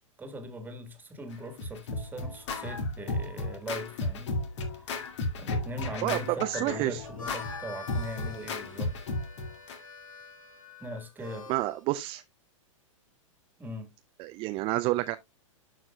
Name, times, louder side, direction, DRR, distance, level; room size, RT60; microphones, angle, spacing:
voice 1, 0.2-4.4 4.7-4.9 5.4-9.0 10.8-11.5 13.6-13.9, equal, 10° right, 1.7 m, -40 dB
Scratching (performance technique), 1.3-9.8, left 2 dB, 60° left, 2.1 m, -34 dB
voice 2, 6.0-7.0 11.5-12.2 14.2-15.2, right 18 dB, 30° right, 0.5 m, -29 dB
Harmonica, 7.0-11.8, left 4 dB, 85° left, 1.7 m, -46 dB
12.5 x 4.8 x 2.3 m
hypercardioid pair, 110°, 17 cm